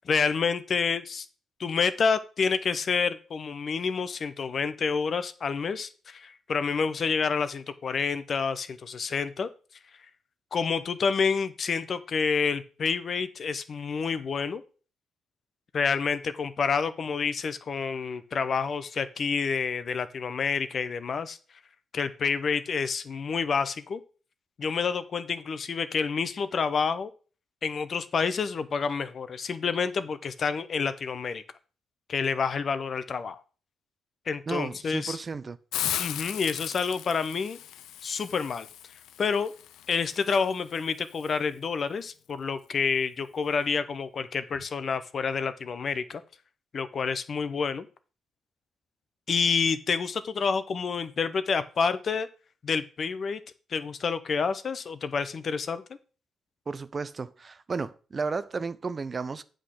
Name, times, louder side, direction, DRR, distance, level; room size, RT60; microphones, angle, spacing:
voice 1, 0.0-1.3 1.6-9.5 10.5-14.6 15.7-21.4 21.9-24.0 24.6-27.1 27.6-31.4 32.1-33.4 34.3-35.2 36.0-37.6 38.0-38.7 39.2-39.5 39.9-46.2 46.7-47.9 49.3-52.3 52.6-53.4 53.7-55.8, left 5 dB, 45° left, 0.7 m, -28 dB
voice 2, 34.5-35.6 56.7-59.4, right 4 dB, 35° right, 0.6 m, -33 dB
Hiss, 35.7-41.3, left 11 dB, 80° left, 0.4 m, -37 dB
8.1 x 3.8 x 6.5 m
cardioid pair, 90°, 0 cm